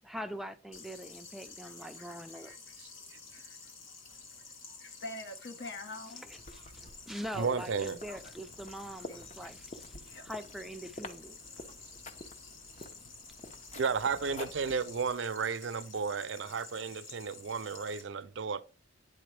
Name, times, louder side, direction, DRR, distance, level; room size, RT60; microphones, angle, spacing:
voice 1, 0.0-2.5 6.2-11.4 12.8-12.9, equal, ahead, 0.4 m, -43 dB
sound 1, 0.7-18.0, left 4 dB, 90° left, 1.3 m, -51 dB
voice 2, 1.8-2.9 3.3-4.0 4.3-4.4 4.8-6.3 7.4-7.7 8.1-8.3 9.0-9.5 9.9-10.3 11.5-13.8 14.2-14.7 15.5-15.8 17.2-17.6 18.2-18.3, left 2 dB, 70° left, 1.3 m, -49 dB
sound 2, 6.2-15.2, left 2 dB, 35° left, 0.8 m, -50 dB
voice 3, 7.3-8.0 13.8-18.6, right 5 dB, 70° right, 0.5 m, -33 dB
9.3 x 3.8 x 3.3 m
head